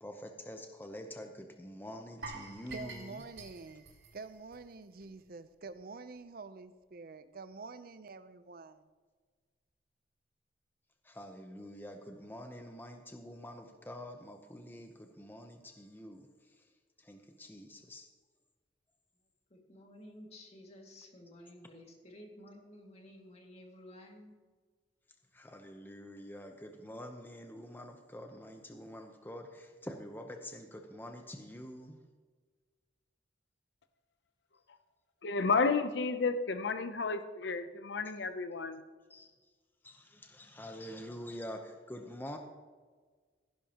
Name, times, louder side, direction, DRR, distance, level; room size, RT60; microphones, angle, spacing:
voice 1, 0.0-3.2 11.0-16.7 17.0-18.1 25.3-32.0 39.1-39.3 39.8-42.4, equal, 10° left, 0.8 m, -46 dB
sound 1, 2.2-5.2 5.5-5.7 6.2-6.3, right 3 dB, 80° right, 2.4 m, -48 dB
voice 2, 2.7-3.8 4.1-8.9, right 4 dB, 55° right, 0.6 m, -47 dB
voice 3, 19.5-24.4, left 1 dB, 35° left, 2.2 m, -53 dB
voice 4, 35.2-38.8, left 4 dB, 80° left, 0.7 m, -31 dB
16.5 x 10.5 x 2.9 m
head